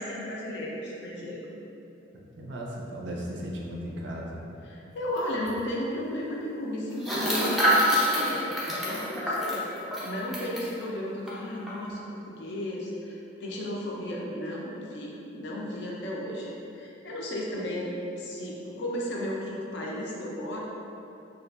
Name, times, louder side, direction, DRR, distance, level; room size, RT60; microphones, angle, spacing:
voice 1, 0.0-1.5 4.6-9.6 10.0-20.6, left 1 dB, 65° left, -3 dB, 0.4 m, -34 dB
voice 2, 2.4-4.4, equal, 70° right, -2 dB, 0.4 m, -36 dB
Rolling Can, 5.2-5.3 5.4-5.6 7.0-10.7 11.3-11.4 11.7-11.9, equal, ahead, 0.3 m, -26 dB
2.8 x 2.4 x 2.3 m, 2.8 s
head